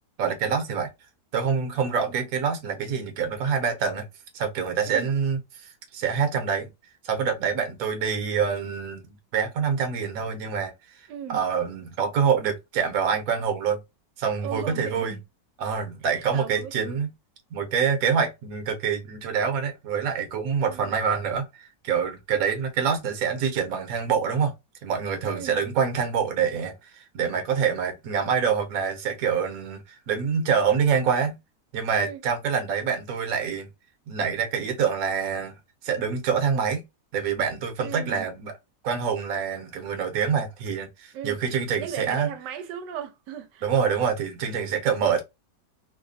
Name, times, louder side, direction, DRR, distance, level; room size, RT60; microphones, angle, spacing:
voice 1, 0.2-0.9 1.3-4.1 4.3-6.7 7.0-13.8 14.2-15.2 15.6-17.1 17.5-24.5 24.8-31.4 31.7-33.7 34.1-35.6 35.8-36.8 37.1-38.5 38.8-42.3 43.6-45.2, right 6 dB, 60° right, 1.2 m, -26 dB
voice 2, 11.1-11.4 14.4-15.2 16.0-17.0 20.6-20.9 25.2-25.6 31.9-32.2 37.8-38.3 41.1-41.4 41.8-43.6 44.6-44.8, right 9 dB, 90° right, 1.2 m, -37 dB
3.2 x 2.2 x 2.5 m
omnidirectional pair, 1.8 m